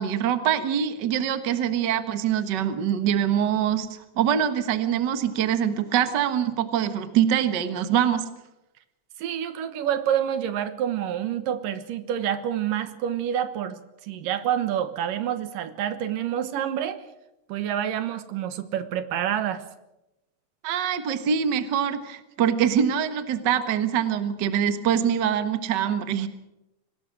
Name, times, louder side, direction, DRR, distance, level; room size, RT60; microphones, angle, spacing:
voice 1, 0.0-8.2 20.6-26.3, right 9 dB, 50° right, 10 dB, 1.4 m, -24 dB
voice 2, 9.2-17.0 17.5-19.6, right 10 dB, 80° right, 11 dB, 2.9 m, -28 dB
24.5 x 19.0 x 6.4 m, 0.92 s
omnidirectional pair, 3.9 m